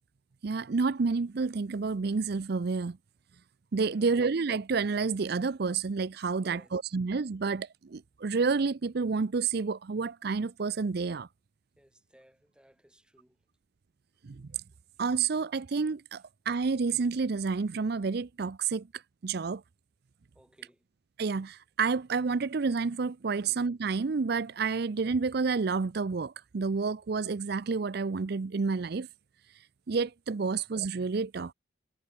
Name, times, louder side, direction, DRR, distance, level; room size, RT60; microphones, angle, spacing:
voice 1, 0.4-3.0 3.7-11.3 14.2-14.6 15.0-19.6 21.2-29.1 29.5-31.5, right 4 dB, 55° right, 0.5 m, -30 dB
voice 2, 3.8-4.1 6.4-6.8 7.3-7.5 11.8-13.4 20.3-20.8 23.4-23.5, equal, 5° right, 4.8 m, -60 dB
head